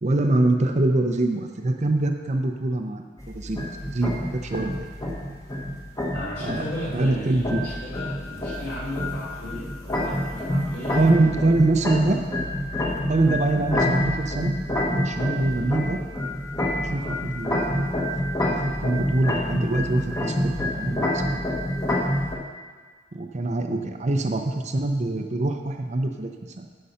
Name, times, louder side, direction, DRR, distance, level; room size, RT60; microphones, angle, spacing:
voice 1, 0.0-4.9 6.4-6.6 6.9-7.6 11.0-12.2 13.1-14.5 14.9-16.0 16.9-18.1 18.5-21.4 23.1-26.7, right 2 dB, 40° right, 4 dB, 0.6 m, -24 dB
sound 1, 3.2-22.4, left 1 dB, 20° left, 1.2 m, -27 dB
voice 2, 6.1-11.3 16.9-17.1, left 1 dB, 55° left, -7 dB, 3.2 m, -35 dB
10.0 x 5.5 x 5.7 m, 1.5 s
head